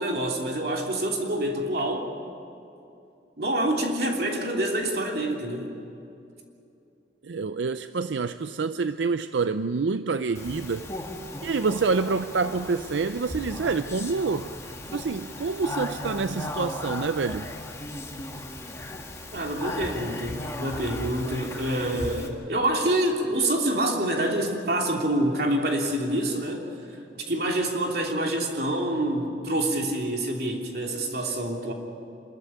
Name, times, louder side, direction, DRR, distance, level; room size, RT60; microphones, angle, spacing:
voice 1, 0.0-2.1 3.4-5.7 19.3-26.7 27.1-31.7, right 1 dB, 55° right, 1 dB, 3.1 m, -26 dB
voice 2, 7.2-10.9 11.4-14.5 14.9-17.5, right 4 dB, 85° right, 11 dB, 0.5 m, -27 dB
Speech, 10.3-22.3, left 1 dB, 15° left, 1.9 m, -36 dB
26.5 x 14.0 x 9.9 m, 2.7 s
head